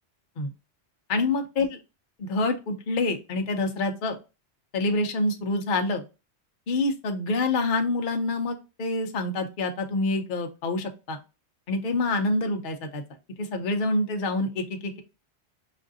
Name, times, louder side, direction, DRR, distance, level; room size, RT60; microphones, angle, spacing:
voice 1, 1.1-1.8 2.2-4.2 4.7-6.0 6.7-11.2 11.7-13.0 13.4-15.0, left 2 dB, 55° left, 5 dB, 0.8 m, -27 dB
6.1 x 2.5 x 2.6 m, 0.28 s
omnidirectional pair, 1.2 m